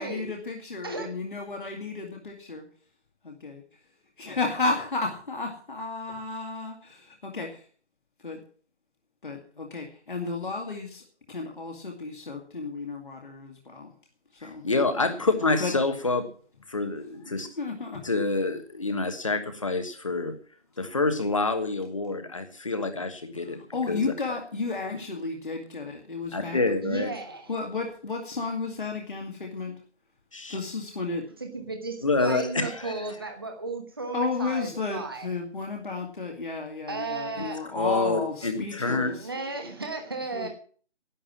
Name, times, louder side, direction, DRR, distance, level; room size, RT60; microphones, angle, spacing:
voice 1, 0.0-2.7 3.2-3.6 4.2-7.6 8.2-8.4 9.2-13.9 14.3-14.6 15.6-15.7 17.6-18.1 23.4-26.6 27.5-29.8 30.5-31.3 34.1-39.3 40.3-40.5, left 3 dB, 45° left, 1 dB, 2.1 m, -33 dB
voice 2, 14.4-16.3 16.7-17.5 18.0-20.3 20.8-23.6 23.9-24.1 24.9-25.0 26.3-27.1 30.3-30.6 32.0-32.9 37.7-39.1, left 3 dB, 30° left, 9 dB, 1.4 m, -27 dB
voice 3, 26.8-27.5 31.4-35.3 36.9-37.6 38.8-40.5, right 3 dB, 20° right, 4 dB, 1.2 m, -34 dB
11.5 x 9.4 x 7.3 m, 0.43 s
figure-of-eight pair, 175°, 34 cm